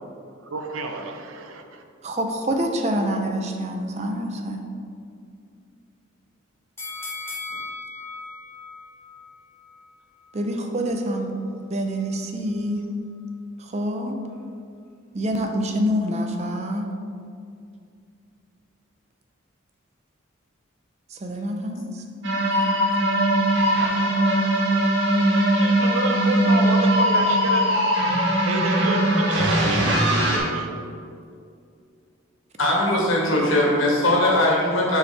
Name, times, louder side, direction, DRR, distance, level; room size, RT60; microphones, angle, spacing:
voice 1, 0.5-1.8 25.6-27.6 28.1-28.2 28.5-30.7, right 3 dB, 90° right, 5 dB, 0.6 m, -30 dB
voice 2, 2.0-4.6 10.3-11.3 11.7-12.8 13.6-14.2 15.1-16.9 21.1-22.0 22.4-22.8, equal, 30° right, 3 dB, 0.5 m, -26 dB
sound 1, 6.8-9.9 10.3-10.4, left 3 dB, 10° left, 0.7 m, -37 dB
sound 2, 22.2-30.4, right 1 dB, 60° right, 1.3 m, -20 dB
voice 3, 32.6-35.0, left 1 dB, 75° left, -3 dB, 1.5 m, -20 dB
6.9 x 4.7 x 3.3 m, 2.4 s
head